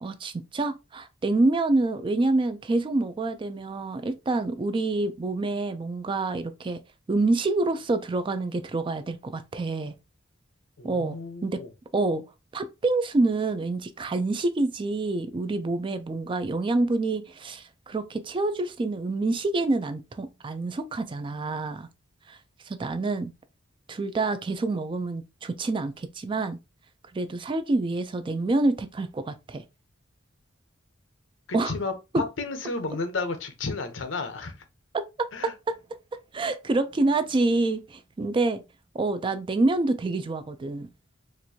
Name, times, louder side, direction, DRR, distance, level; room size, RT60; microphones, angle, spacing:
voice 1, 0.0-6.8 7.1-9.9 10.8-11.2 11.4-11.6 11.9-12.2 12.5-21.9 22.3-22.4 22.7-23.3 23.9-26.6 27.1-29.6 31.5-31.7 32.1-32.2 35.2-35.7 36.3-38.6 38.9-40.9, right 2 dB, 25° right, 0.3 m, -27 dB
voice 2, 10.8-11.7 31.5-34.6 35.3-35.5, left 3 dB, 70° left, 0.7 m, -32 dB
4.3 x 2.5 x 2.7 m
head